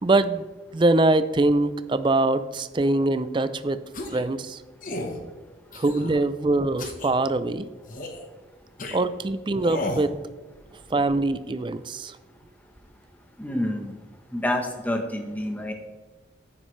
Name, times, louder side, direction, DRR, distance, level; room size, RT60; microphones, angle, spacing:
voice 1, 0.0-0.5 0.7-3.8 4.1-4.6 5.7-7.7 8.9-10.1 10.9-12.2, right 2 dB, 25° right, 13 dB, 0.4 m, -23 dB
sound 1, 3.9-4.3 4.8-5.2 5.7-6.2 6.8-7.1 7.9-8.2 8.8-9.0 9.6-10.1, left 1 dB, 45° left, 1.1 m, -33 dB
voice 2, 13.4-14.0 14.3-15.7, left 1 dB, 10° left, 3 dB, 1.0 m, -28 dB
9.8 x 9.5 x 3.2 m, 1.3 s
head